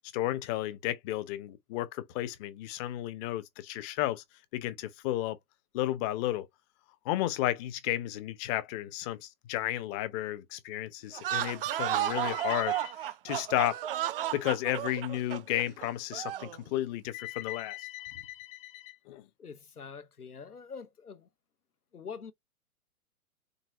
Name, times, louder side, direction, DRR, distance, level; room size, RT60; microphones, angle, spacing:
voice 1, 0.1-4.2 4.5-5.4 5.7-6.5 7.0-13.8 14.3-19.3, left 14 dB, 25° left, 0.6 m, -33 dB
sound 1, 11.1-16.6, right 13 dB, 40° right, 0.5 m, -33 dB
voice 2, 19.4-21.3 21.9-22.3, left 6 dB, 85° left, 1.0 m, -45 dB
4.0 x 3.8 x 2.4 m
figure-of-eight pair, 115°, 44 cm